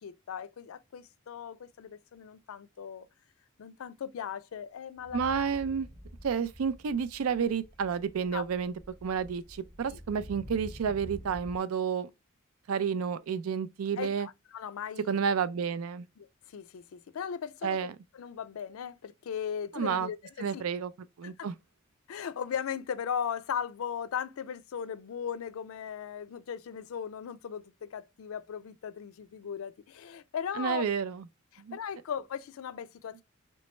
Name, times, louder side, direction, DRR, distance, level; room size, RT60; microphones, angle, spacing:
voice 1, 0.0-3.1 3.6-5.2 8.3-8.4 9.9-10.0 14.0-15.2 16.2-16.3 16.5-17.8 18.1-20.6 21.2-21.5 22.1-30.9 31.5-33.2, left 8 dB, 75° left, 0.4 m, -38 dB
sound 1, 5.0-11.6, equal, 10° left, 0.6 m, -48 dB
voice 2, 5.1-5.9 6.2-8.7 9.0-12.1 12.7-14.3 15.1-16.1 17.6-17.9 19.7-20.1 20.4-20.9 21.2-21.5 30.6-31.2 31.6-31.8, right 6 dB, 85° right, 0.4 m, -30 dB
3.3 x 3.1 x 3.0 m
head